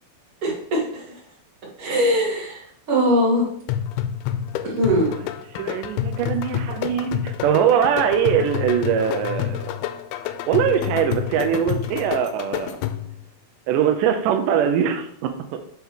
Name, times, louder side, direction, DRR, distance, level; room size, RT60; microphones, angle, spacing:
voice 1, 0.4-1.2 1.8-3.5 4.6-5.1, equal, 40° right, -4 dB, 3.0 m, -21 dB
sound 1, 3.7-13.2, left 11 dB, 85° left, 2.4 m, -28 dB
voice 2, 5.5-9.7 10.5-12.8 13.7-15.6, right 8 dB, 85° right, 7 dB, 1.8 m, -22 dB
7.8 x 5.9 x 3.6 m, 0.66 s
omnidirectional pair, 4.5 m